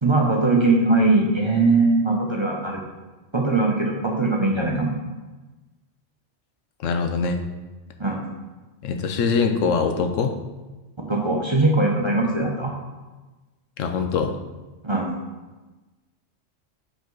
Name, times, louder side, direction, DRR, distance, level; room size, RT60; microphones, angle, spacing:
voice 1, 0.0-2.8 3.3-4.9 8.0-8.2 11.1-12.7 14.8-15.1, right 2 dB, 25° right, -1 dB, 0.8 m, -20 dB
voice 2, 6.8-7.4 8.8-10.4 13.8-14.3, left 5 dB, 85° left, 6 dB, 1.0 m, -23 dB
6.5 x 5.1 x 4.0 m, 1.2 s
omnidirectional pair, 1.3 m